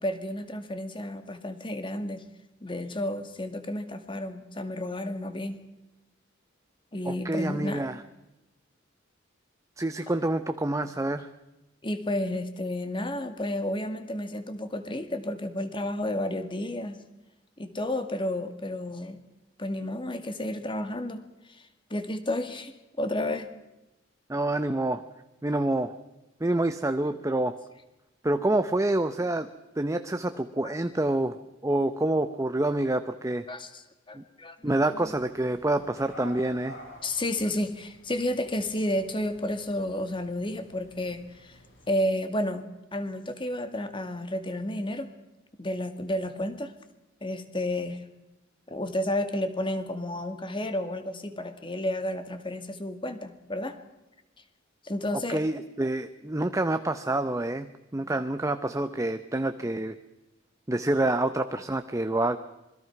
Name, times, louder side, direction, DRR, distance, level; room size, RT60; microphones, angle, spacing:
voice 1, 0.0-2.2 2.6-5.6 6.9-7.9 11.8-17.0 17.6-19.3 19.6-21.2 21.5-21.6 21.9-23.5 30.6-30.8 33.5-35.1 37.0-41.6 41.9-45.1 45.6-46.7 47.2-48.0 48.7-53.7 54.8-55.4, left 1 dB, 25° left, 8 dB, 2.0 m, -31 dB
voice 2, 7.0-8.0 9.8-11.3 24.3-25.0 25.4-25.9 26.4-27.6 28.2-29.5 29.8-31.4 31.6-33.4 34.1-34.2 34.6-36.8 55.3-60.0 60.7-62.4, right 2 dB, 15° right, 9 dB, 0.8 m, -27 dB
sound 1, 35.0-42.0, left 1 dB, 75° left, 7.8 m, -51 dB
26.5 x 21.5 x 6.0 m, 0.97 s
head